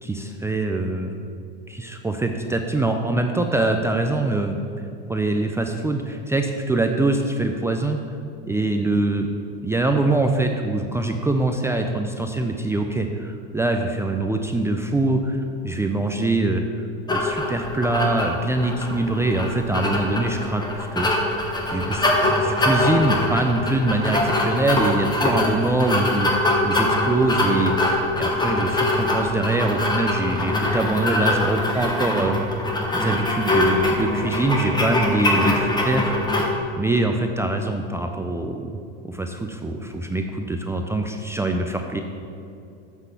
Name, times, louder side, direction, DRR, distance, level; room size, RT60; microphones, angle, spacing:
voice 1, 0.0-1.1 1.7-4.5 5.1-8.0 8.4-9.3 9.6-16.6 17.1-21.1 21.7-22.0 22.2-27.9 28.2-32.4 32.9-36.1 36.8-38.7 39.1-42.0, right 2 dB, 10° right, 4 dB, 0.5 m, -23 dB
sound 1, 17.1-36.5, left 1 dB, 15° left, 1.5 m, -23 dB
7.3 x 6.2 x 6.8 m, 2.6 s
supercardioid pair, 105°, 30 cm